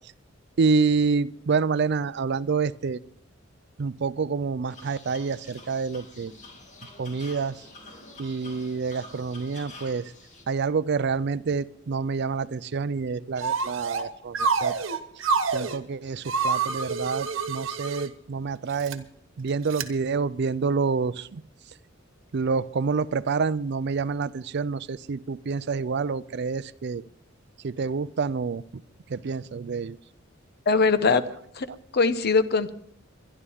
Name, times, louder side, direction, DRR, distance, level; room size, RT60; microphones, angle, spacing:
voice 1, 0.6-3.0 3.8-6.3 7.0-7.6 8.2-10.1 10.5-14.7 15.5-19.0 19.4-21.4 22.3-27.0 27.6-28.8 29.1-30.0, right 5 dB, 60° right, 18 dB, 0.5 m, -27 dB
sound 1, 4.7-10.4, left 2 dB, 40° left, 2.4 m, -47 dB
sound 2, 13.4-14.0 14.3-15.8 16.2-18.1 18.7-18.9 19.7-19.8, right 5 dB, 75° right, 1.2 m, -27 dB
voice 2, 30.7-31.2 31.5-32.8, left 4 dB, 55° left, 12 dB, 0.9 m, -22 dB
24.0 x 11.0 x 3.6 m, 0.69 s
head